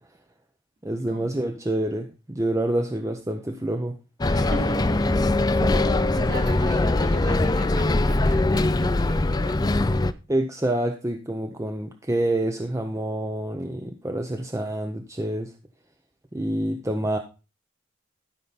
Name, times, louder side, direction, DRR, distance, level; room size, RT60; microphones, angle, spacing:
voice 1, 0.8-4.0 5.6-6.2 10.3-15.5 16.3-17.2, right 1 dB, 15° right, 0.7 m, -27 dB
Bus, 4.2-10.1, left 2 dB, 20° left, 0.4 m, -22 dB
voice 2, 4.3-5.6 6.1-9.6, right 1 dB, 50° right, 2.8 m, -38 dB
12.5 x 5.7 x 4.0 m
head